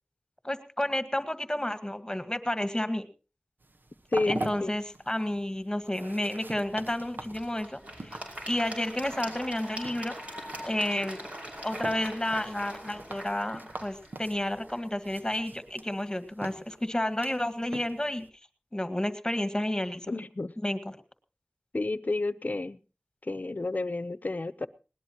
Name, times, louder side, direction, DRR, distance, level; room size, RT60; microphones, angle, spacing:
voice 1, 0.4-3.1 4.3-8.2 8.5-10.2 10.6-11.3 11.6-18.3 18.7-20.2 20.6-21.0, left 1 dB, 20° left, 10 dB, 1.9 m, -31 dB
sound 1, 3.6-18.3, right 2 dB, 75° right, 1.3 m, -44 dB
Applause / Crowd, 6.6-15.7, equal, 40° right, 5.7 m, -43 dB
voice 2, 20.1-20.5 21.7-22.8 23.2-24.7, left 2 dB, 60° left, 14 dB, 0.9 m, -30 dB
20.0 x 19.0 x 3.0 m, 0.36 s
wide cardioid pair, 40°, 3 cm